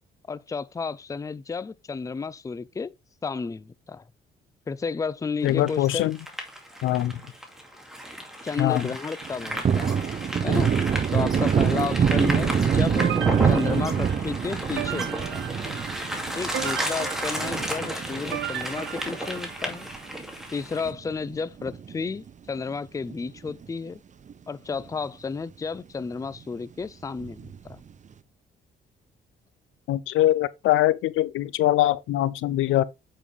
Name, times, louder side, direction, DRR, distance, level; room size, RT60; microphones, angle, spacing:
voice 1, 0.3-2.9 3.2-4.0 4.7-6.1 8.4-10.0 10.4-10.7 11.1-13.1 13.4-15.5 16.4-19.9 20.5-24.0 24.5-27.8, left 5 dB, 15° left, 0.4 m, -32 dB
voice 2, 5.4-6.2 6.8-7.2 8.6-8.9 29.9-32.8, left 14 dB, 80° left, 0.5 m, -23 dB
sound 1, 5.5-20.9, equal, ahead, 2.3 m, -34 dB
Thunder, 9.2-20.0 20.3-20.4 20.8-22.3 22.6-22.7 23.1-23.9 24.3-24.4 24.7-24.8 27.2-27.7, right 7 dB, 40° right, 0.7 m, -26 dB
sound 2, 13.0-19.9, right 10 dB, 70° right, 1.1 m, -36 dB
8.4 x 5.4 x 3.3 m
cardioid pair, 90°, 20 cm